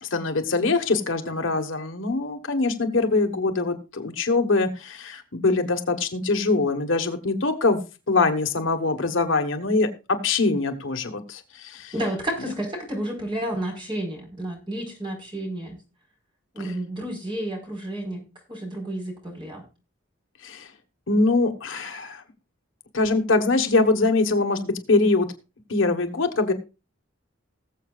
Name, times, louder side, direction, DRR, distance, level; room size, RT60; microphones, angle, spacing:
voice 1, 0.0-7.8 8.1-11.9 16.6-16.7 20.4-20.7 21.1-22.2 22.9-25.3 25.7-26.5, left 3 dB, 70° left, 7 dB, 1.3 m, -23 dB
voice 2, 11.9-15.8 16.5-18.2 18.5-19.6, right 1 dB, 25° right, 0 dB, 4.6 m, -31 dB
19.5 x 7.4 x 2.4 m, 0.30 s
head